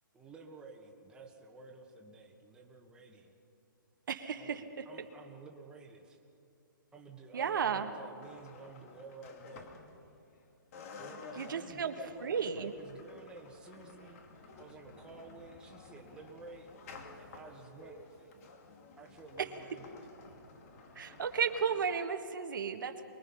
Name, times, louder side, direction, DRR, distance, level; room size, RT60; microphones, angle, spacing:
voice 1, 0.1-3.4 4.4-6.2 6.9-9.7 11.0-14.2 14.6-18.3 19.0-19.9, right 3 dB, 5° right, 0 dB, 1.7 m, -52 dB
voice 2, 4.1-4.6 7.3-7.9 11.4-11.9 12.2-12.7 19.4-19.5 20.9-23.0, right 7 dB, 65° right, 6 dB, 1.5 m, -33 dB
sound 1, 8.2-10.4 10.7-21.9, left 4 dB, 40° left, 2.4 m, -53 dB
24.0 x 21.0 x 5.7 m, 2.7 s
hypercardioid pair, 150°, 12 cm